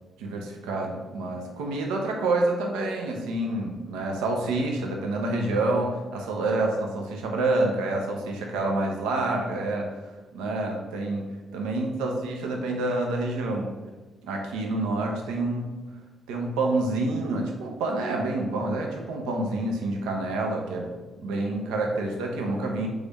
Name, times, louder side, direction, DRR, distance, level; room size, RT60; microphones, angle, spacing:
voice 1, 0.2-9.9 10.3-11.3 11.5-13.7 14.2-15.7 16.3-20.9 21.2-22.9, right 2 dB, 85° right, 1 dB, 0.5 m, -28 dB
3.2 x 2.4 x 3.9 m, 1.2 s
hypercardioid pair, 50°, 0 cm